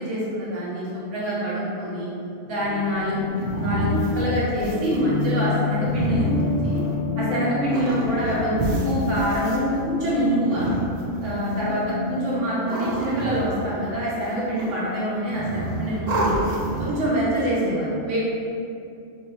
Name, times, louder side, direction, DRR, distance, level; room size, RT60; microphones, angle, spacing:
voice 1, 0.0-2.1 2.4-6.8 7.2-10.7 11.2-11.8 12.1-16.4 16.8-18.2, equal, 75° right, -8 dB, 1.4 m, -25 dB
sound 1, 2.5-12.4, left 5 dB, 50° left, 0.7 m, -29 dB
sound 2, 2.8-7.2 7.7-9.6 10.3-11.5 12.3-13.9 14.2-14.9 15.2-17.1, right 2 dB, 55° right, 0.4 m, -29 dB
3.0 x 2.8 x 4.1 m, 2.5 s
omnidirectional pair, 1.3 m